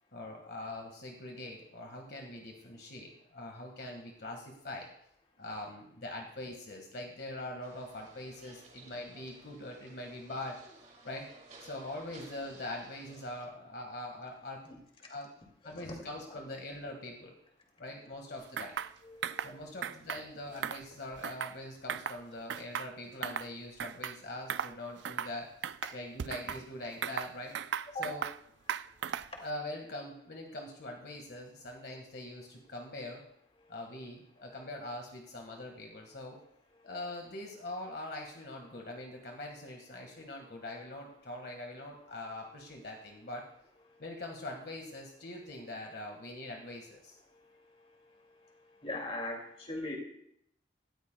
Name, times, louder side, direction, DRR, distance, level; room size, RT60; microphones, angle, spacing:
voice 1, 0.1-4.9 5.4-10.6 11.0-11.3 11.6-14.6 15.1-15.3 15.6-17.4 17.8-18.7 19.4-25.5 25.9-27.5 28.0-28.2 29.4-33.2 33.7-36.4 36.8-43.5 44.0-47.2, left 1 dB, 60° left, 1 dB, 1.7 m, -43 dB
sound 1, 7.6-13.5, right 3 dB, 40° right, 2.1 m, -56 dB
voice 2, 15.6-15.9 19.0-19.7 22.3-22.4 27.9-28.0 29.3-29.5 48.8-50.0, left 1 dB, 30° left, 1 dB, 2.4 m, -40 dB
sound 2, 18.6-18.9 19.2-19.5 19.8-20.2 20.6-21.6 21.9-22.2 22.5-23.5 23.8-24.2 24.5-24.8 25.1-25.4 25.6-26.6 27.0-28.4 28.7-29.4, right 8 dB, 70° right, 0.4 m, -37 dB
18.0 x 13.5 x 2.3 m, 0.70 s
head